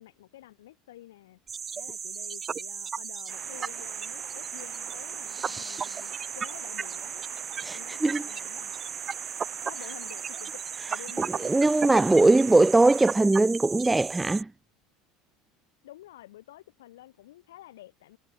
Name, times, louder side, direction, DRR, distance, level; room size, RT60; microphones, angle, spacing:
voice 1, 0.0-1.4 1.7-8.7 9.6-10.6 10.9-11.6 11.9-12.5 15.8-18.2, left 15 dB, 70° left, 3.1 m, -49 dB
sound 1, 1.5-14.4, right 6 dB, 30° right, 1.6 m, -35 dB
sound 2, 3.3-13.1, right 16 dB, 50° right, 0.8 m, -46 dB
voice 2, 5.3-6.0 7.6-8.2 11.4-14.5, right 2 dB, 10° right, 0.3 m, -21 dB
figure-of-eight pair, 70°, 0 cm